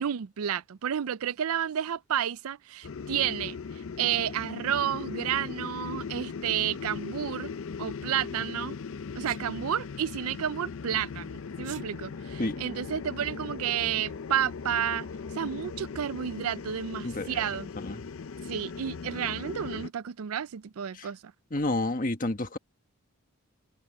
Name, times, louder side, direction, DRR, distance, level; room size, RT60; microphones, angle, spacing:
voice 1, 0.0-3.6 4.0-7.5 7.8-8.7 9.2-15.1 15.4-17.7 18.5-21.2, right 9 dB, 80° right, 0.4 m, -31 dB
sound 1, 2.8-19.9, left 5 dB, 65° left, 0.5 m, -39 dB
Sneeze, 9.2-9.5 11.5-11.9, right 12 dB, 55° right, 2.3 m, -46 dB
voice 2, 17.0-17.5 17.8-18.1 20.9-21.1 21.5-22.6, left 2 dB, 40° left, 1.5 m, -30 dB
head